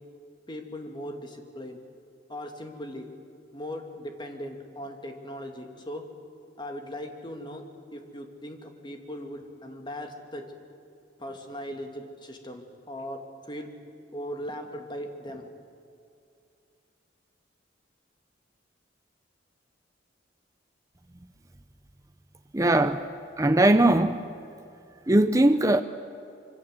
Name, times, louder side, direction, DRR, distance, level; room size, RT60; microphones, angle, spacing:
voice 1, 0.5-1.8 2.3-3.1 3.5-6.0 6.6-7.6 7.9-10.4 11.2-13.2 13.5-13.7 14.1-15.5, equal, 25° left, 4 dB, 2.6 m, -38 dB
voice 2, 22.5-23.1 23.4-24.3 25.1-25.8, right 1 dB, 20° right, 8 dB, 0.7 m, -20 dB
25.5 x 24.0 x 8.1 m, 2.5 s
head